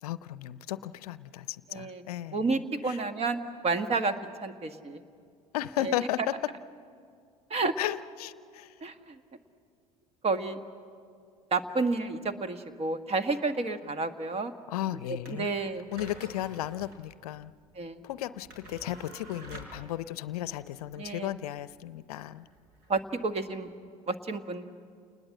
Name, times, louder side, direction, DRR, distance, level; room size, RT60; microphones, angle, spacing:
voice 1, 0.0-2.5 2.9-3.0 5.5-6.4 7.8-8.7 14.7-15.5 15.9-17.5 18.0-22.5, left 13 dB, 75° left, 16 dB, 0.6 m, -35 dB
voice 2, 1.7-2.0 2.3-4.1 4.4-5.0 5.8-5.9 7.5-7.7 8.8-9.2 10.2-10.6 11.5-14.5 15.3-15.8 17.7-18.0 21.0-21.3 22.9-23.7 24.1-24.6, right 3 dB, 30° right, 10 dB, 1.6 m, -30 dB
sound 1, 15.2-23.7, right 2 dB, 60° right, 5.8 m, -50 dB
29.0 x 20.5 x 7.7 m, 2.3 s
hypercardioid pair, 70°, 19 cm